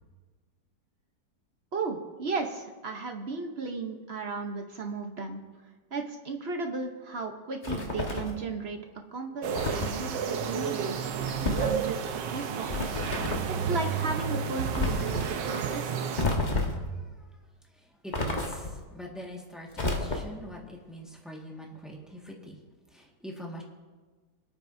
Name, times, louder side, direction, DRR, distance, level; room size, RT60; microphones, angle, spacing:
voice 1, 1.7-5.4 5.9-8.8 9.1-13.0 13.6-16.0, right 3 dB, 45° right, 4 dB, 0.9 m, -35 dB
sound 1, 7.6-8.4 9.5-10.0 11.2-11.8 12.7-13.5 14.7-15.3 16.2-16.9 18.1-18.8 19.7-20.5, left 2 dB, 30° left, 1.2 m, -30 dB
sound 2, 9.4-16.3, right 7 dB, 75° right, 1.4 m, -31 dB
voice 2, 16.6-17.2 17.7-22.6 22.9-23.6, equal, ahead, -2 dB, 1.4 m, -43 dB
26.5 x 8.9 x 2.7 m, 1.3 s
omnidirectional pair, 1.9 m